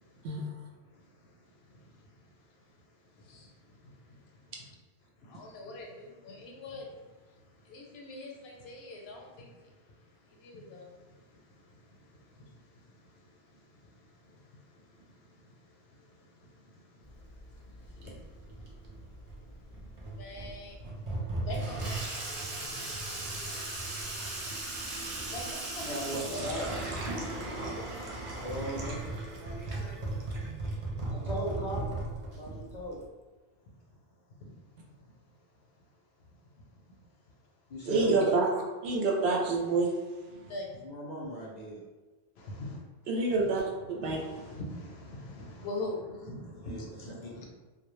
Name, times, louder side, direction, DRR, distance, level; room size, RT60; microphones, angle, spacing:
voice 1, 5.3-6.9 7.7-9.5 10.4-10.9 20.2-20.8 21.4-22.0 25.3-26.5 27.8-27.9 34.4-34.5 37.9-38.2 40.3-40.7 42.4-42.8 43.3-43.4 43.7-47.4, left 2 dB, 75° left, 0 dB, 0.8 m, -42 dB
Water tap faucet / Sink (filling or washing), 17.0-33.1, right 2 dB, 50° right, 0.4 m, -37 dB
voice 2, 25.8-26.8 27.2-27.4 28.3-30.6 31.0-32.0 32.4-33.1 37.7-38.3 40.8-41.8 46.6-46.8 47.2-47.4, equal, 55° left, -5 dB, 0.5 m, -38 dB
voice 3, 37.9-38.5 38.8-39.9 43.1-43.6 43.9-44.2, right 3 dB, 75° right, -1 dB, 0.8 m, -27 dB
2.1 x 2.1 x 3.0 m, 1.3 s
omnidirectional pair, 1.1 m